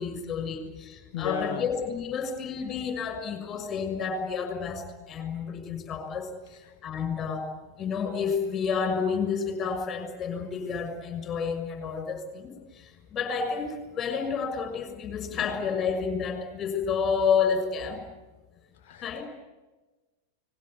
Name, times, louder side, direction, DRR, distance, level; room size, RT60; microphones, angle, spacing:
voice 1, 0.0-7.5 7.8-18.0 19.0-19.2, left 6 dB, 25° left, 6.3 m, -30 dB
voice 2, 1.1-1.6 18.8-19.2, left 11 dB, 50° left, 0.9 m, -33 dB
30.0 x 20.5 x 8.0 m
figure-of-eight pair, 90°, 0 cm